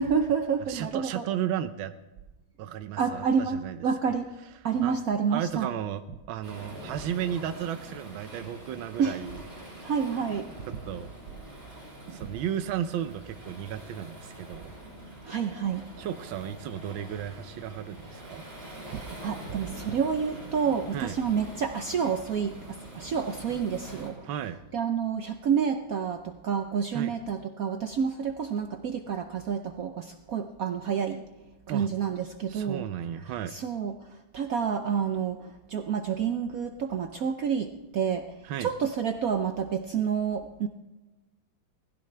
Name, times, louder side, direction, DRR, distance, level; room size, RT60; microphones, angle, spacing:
voice 1, 0.0-1.3 3.0-4.3 4.6-5.7 9.0-9.2 9.8-10.5 12.1-12.3 15.2-15.8 18.9-24.3 24.7-31.2 31.7-32.9 33.5-34.0 34.3-38.3 38.6-40.7, right 7 dB, 65° right, 6 dB, 0.9 m, -29 dB
voice 2, 0.7-1.9 2.6-3.8 4.8-4.9 5.3-6.0 6.3-9.4 10.8-11.1 12.1-14.7 16.0-18.4 20.9-21.2 24.2-24.6 26.9-27.1 31.7-31.9 32.5-33.6 38.4-38.7, right 10 dB, 85° right, 9 dB, 1.5 m, -34 dB
Waves surf, 6.4-24.1, right 1 dB, 35° right, 6.5 m, -44 dB
20.0 x 15.5 x 3.3 m, 1.0 s
omnidirectional pair, 2.1 m